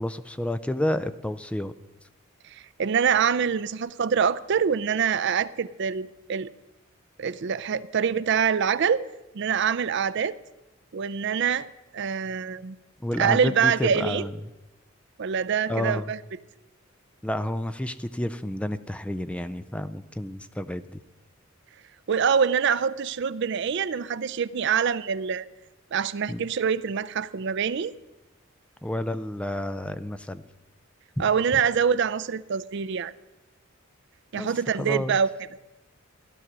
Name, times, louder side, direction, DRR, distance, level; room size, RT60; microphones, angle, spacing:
voice 1, 0.0-1.7 13.0-14.3 15.7-16.1 17.2-21.0 26.3-26.4 28.8-30.4 34.4-34.5 34.8-35.2, left 1 dB, 5° left, 0.4 m, -30 dB
voice 2, 2.4-6.5 7.2-9.0 9.3-10.4 10.9-11.7 11.9-12.8 13.2-14.3 15.2-16.2 22.1-25.5 25.9-27.9 31.2-33.1 34.3-35.3, right 7 dB, 55° right, 0.4 m, -25 dB
15.5 x 11.0 x 6.0 m
head